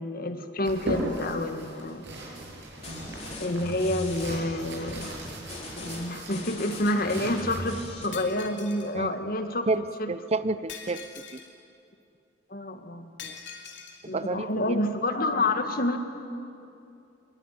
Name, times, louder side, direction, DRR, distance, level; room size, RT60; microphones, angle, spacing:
voice 1, 0.0-2.1 3.4-5.1 5.7-9.7 10.0-10.1 12.5-13.1 14.1-16.0, left 1 dB, 55° left, 7 dB, 1.9 m, -28 dB
sound 1, 0.6-7.9, right 1 dB, 75° right, 6.9 m, -38 dB
sound 2, 2.7-8.1, left 1 dB, 40° left, 3.9 m, -40 dB
Shatter, 8.1-8.9 10.7-11.5 13.2-14.0, left 6 dB, 80° left, 3.1 m, -43 dB
voice 2, 9.7-11.4 13.2-13.4 14.0-14.8, right 3 dB, 35° right, 15 dB, 0.6 m, -30 dB
25.0 x 21.5 x 9.4 m, 2.6 s
head